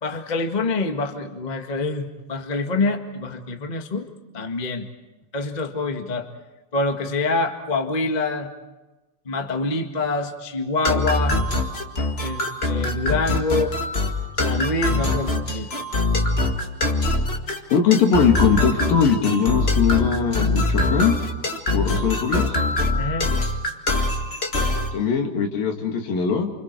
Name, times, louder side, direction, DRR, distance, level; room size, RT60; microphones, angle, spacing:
voice 1, 0.0-4.1 4.3-4.9 5.3-6.3 6.7-8.5 9.2-11.4 12.2-13.7 14.4-15.7 23.0-23.3, left 3 dB, 45° left, 4 dB, 0.5 m, -26 dB
sound 1, 10.8-24.9, left 2 dB, 30° left, 1.2 m, -23 dB
voice 2, 17.7-21.2 21.7-22.6 24.9-26.5, left 6 dB, 70° left, 3 dB, 4.1 m, -20 dB
29.5 x 27.5 x 4.7 m, 1.1 s
omnidirectional pair, 4.2 m